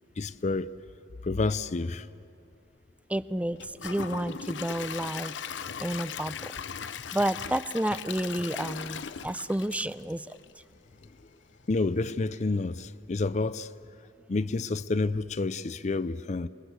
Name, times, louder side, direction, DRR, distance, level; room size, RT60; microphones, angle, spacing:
voice 1, 0.2-0.7 1.2-2.1 11.0-11.1 11.7-13.7 14.3-16.5, left 3 dB, 40° left, 0.5 m, -29 dB
voice 2, 3.1-6.5 6.8-10.4, right 1 dB, 10° right, 0.5 m, -31 dB
Gurgling / Toilet flush / Trickle dribble, 3.6-10.6 11.0-11.1 11.6-11.7, left 7 dB, 85° left, 0.7 m, -38 dB
28.0 x 22.0 x 8.1 m
head